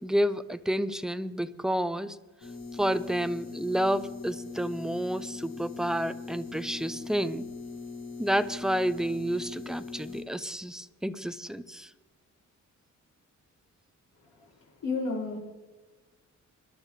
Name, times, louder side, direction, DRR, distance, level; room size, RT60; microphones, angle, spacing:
voice 1, 0.0-2.2 2.7-7.5 8.2-11.9, equal, ahead, 12 dB, 0.3 m, -30 dB
sound 1, 2.4-10.2, left 4 dB, 55° left, 3.6 m, -41 dB
voice 2, 14.2-15.4, left 3 dB, 85° left, -6 dB, 4.6 m, -33 dB
24.0 x 11.5 x 3.2 m, 1.3 s
wide cardioid pair, 155°, 31 cm